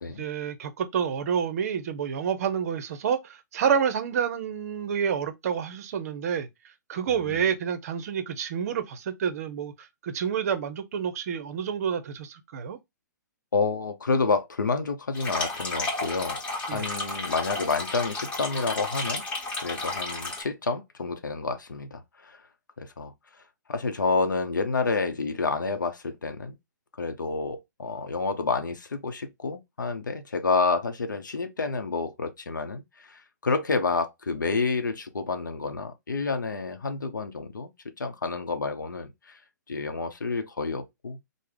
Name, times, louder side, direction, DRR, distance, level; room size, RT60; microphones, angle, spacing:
voice 1, 0.2-6.5 6.9-12.8 16.7-16.9, right 7 dB, 55° right, 0.6 m, -28 dB
voice 2, 7.1-7.5 13.5-16.4 16.7-19.2 19.6-22.4 22.8-23.1 23.7-26.6 27.0-37.7 38.0-39.4 39.7-41.2, left 4 dB, 85° left, 0.6 m, -29 dB
sound 1, 15.1-20.4, left 2 dB, 15° left, 1.2 m, -32 dB
3.3 x 2.0 x 3.5 m
hypercardioid pair, 125°, 10 cm